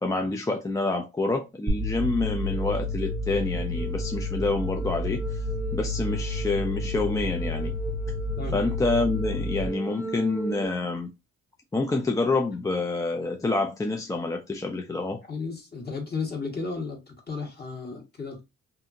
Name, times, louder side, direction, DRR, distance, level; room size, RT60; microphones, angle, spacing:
voice 1, 0.0-5.4 5.7-7.8 8.5-11.1 11.7-15.2 17.9-18.0, left 3 dB, 10° left, 0.3 m, -27 dB
sound 1, 1.7-10.7, left 1 dB, 5° right, 0.8 m, -30 dB
voice 2, 15.3-18.4, left 4 dB, 30° left, 1.3 m, -34 dB
2.7 x 2.4 x 2.6 m
cardioid pair, 90°, 30 cm